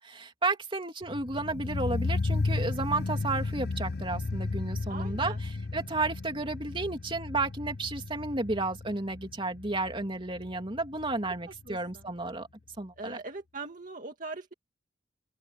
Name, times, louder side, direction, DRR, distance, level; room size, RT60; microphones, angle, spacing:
voice 1, 0.0-12.5 12.8-13.2, right 2 dB, 30° right, 3.0 m, -32 dB
sound 1, 1.0-12.0 12.3-12.4, left 3 dB, 55° left, 0.7 m, -34 dB
voice 2, 4.9-5.4 11.7-12.0 13.0-14.5, right 3 dB, 45° right, 2.2 m, -41 dB
open air
head